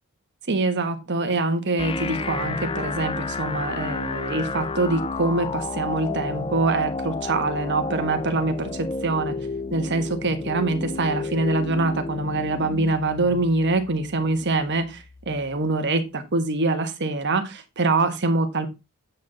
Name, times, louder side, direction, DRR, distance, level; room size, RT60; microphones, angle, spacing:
voice 1, 0.5-9.3 9.7-18.7, right 3 dB, 55° right, 1.3 m, -24 dB
sound 1, 1.8-15.8, left 4 dB, 25° left, 0.5 m, -32 dB
8.4 x 6.1 x 3.9 m
head